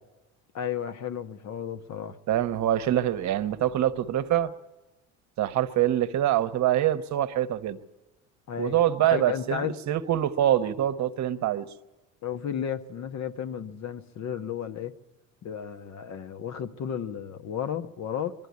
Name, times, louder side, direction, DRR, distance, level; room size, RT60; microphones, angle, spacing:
voice 1, 0.5-2.2 8.5-8.8 9.1-9.7 12.2-14.9 15.4-18.3, left 8 dB, 45° left, 1.2 m, -33 dB
voice 2, 2.3-4.5 5.4-7.8 8.6-11.7, right 12 dB, 50° right, 1.1 m, -25 dB
22.5 x 12.5 x 9.5 m
supercardioid pair, 95°, 36 cm